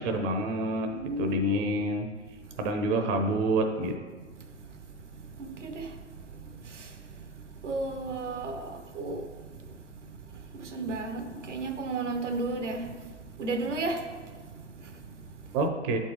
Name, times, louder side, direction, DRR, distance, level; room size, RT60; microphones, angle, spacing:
voice 1, 0.0-0.9 1.2-2.1 2.6-3.9 15.5-16.0, right 1 dB, 25° right, 0.6 m, -27 dB
voice 2, 0.9-1.3 2.4-2.5 4.4-4.5 5.0-5.1 5.4-7.2 7.6-9.3 10.0-15.5, right 3 dB, 75° right, 1.0 m, -35 dB
11.5 x 4.5 x 3.1 m
figure-of-eight pair, 115°, 36 cm